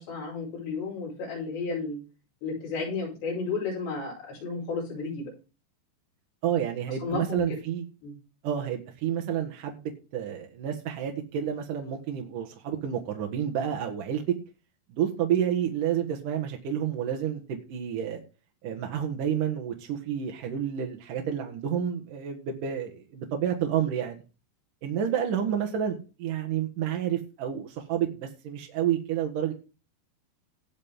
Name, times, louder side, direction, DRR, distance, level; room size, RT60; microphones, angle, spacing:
voice 1, 0.0-2.0 2.4-5.3 6.9-7.6 8.0-8.1, left 4 dB, 60° left, -6 dB, 10.0 m, -33 dB
voice 2, 6.4-7.8 8.4-14.2 15.0-18.2 18.6-24.2 24.8-29.5, right 9 dB, 55° right, 2 dB, 2.6 m, -30 dB
18.0 x 6.6 x 3.7 m, 0.32 s
omnidirectional pair, 5.5 m